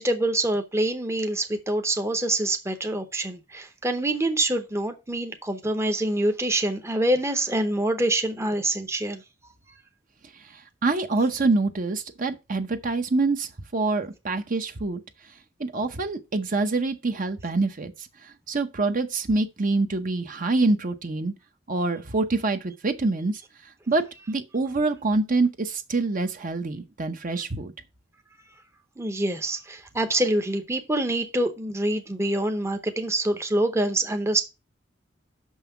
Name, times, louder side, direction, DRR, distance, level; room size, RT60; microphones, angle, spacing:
voice 1, 0.0-9.2 29.0-34.4, right 1 dB, 15° right, 0.8 m, -25 dB
voice 2, 10.3-15.0 15.6-21.3 21.7-27.7, right 3 dB, 45° right, 0.8 m, -26 dB
6.1 x 5.6 x 5.6 m
head